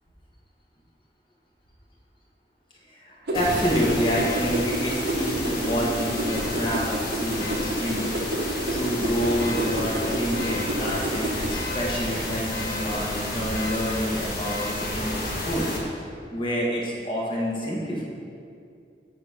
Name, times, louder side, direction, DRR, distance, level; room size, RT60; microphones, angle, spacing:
voice 1, 2.9-8.1 8.7-15.7 16.3-18.0, equal, 30° left, -4 dB, 1.4 m, -28 dB
sound 1, 3.3-15.8, left 1 dB, 55° left, 1.4 m, -31 dB
sound 2, 3.3-11.6, right 1 dB, 65° right, 0.9 m, -29 dB
8.4 x 4.4 x 5.5 m, 2.4 s
head